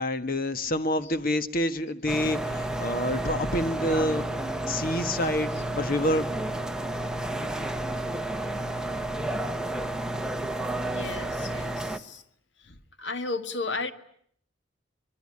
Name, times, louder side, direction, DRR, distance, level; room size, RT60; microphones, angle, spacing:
voice 1, 0.0-4.3 4.7-6.3, left 1 dB, 50° left, 10 dB, 1.6 m, -27 dB
sound 1, 2.1-12.0, right 1 dB, 5° right, 1.3 m, -31 dB
voice 2, 5.2-5.6 10.8-12.2 12.6-12.7 13.0-13.9, left 3 dB, 70° left, 9 dB, 1.9 m, -35 dB
25.5 x 22.5 x 9.9 m, 0.67 s
head